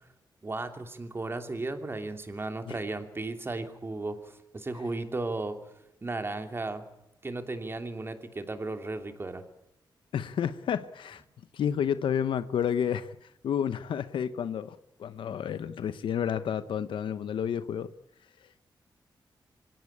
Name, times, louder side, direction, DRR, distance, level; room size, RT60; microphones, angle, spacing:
voice 1, 0.4-5.6 6.0-6.8 7.2-9.5, right 2 dB, 30° right, 7 dB, 2.9 m, -35 dB
voice 2, 10.1-11.2 11.5-17.9, left 8 dB, 90° left, 13 dB, 0.9 m, -30 dB
25.5 x 17.0 x 8.7 m, 0.86 s
wide cardioid pair, 110°, 8 cm